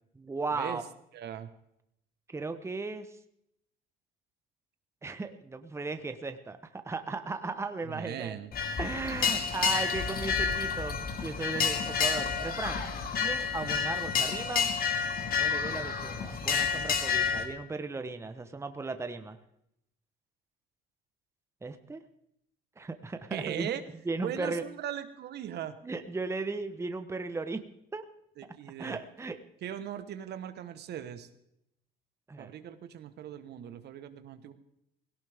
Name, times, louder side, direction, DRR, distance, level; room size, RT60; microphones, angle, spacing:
voice 1, 0.2-0.8 2.3-3.1 5.0-6.6 6.8-8.4 8.8-12.8 13.2-14.7 15.2-19.4 21.6-22.0 22.8-23.7 24.1-24.6 25.8-27.6 27.9-28.0 28.8-29.4 32.3-32.5, right 3 dB, 15° right, 9 dB, 1.0 m, -36 dB
voice 2, 1.1-1.5 7.8-8.5 23.3-23.8 24.2-25.8 28.4-29.0 29.6-31.3 32.4-34.5, right 10 dB, 60° right, 11 dB, 1.2 m, -39 dB
sound 1, 8.5-17.4, left 6 dB, 50° left, 2.1 m, -30 dB
17.5 x 16.5 x 3.5 m, 0.77 s
supercardioid pair, 95°, 20 cm